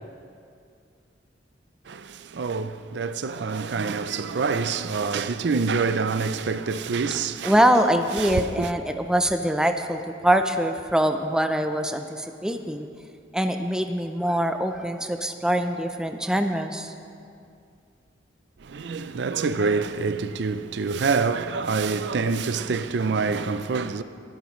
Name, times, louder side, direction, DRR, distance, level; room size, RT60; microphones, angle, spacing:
voice 1, 1.9-7.6 8.2-8.7 18.6-24.0, right 4 dB, 65° right, 0.4 m, -26 dB
voice 2, 7.4-12.9 13.3-16.9, equal, 5° right, 0.5 m, -23 dB
22.5 x 12.0 x 3.1 m
head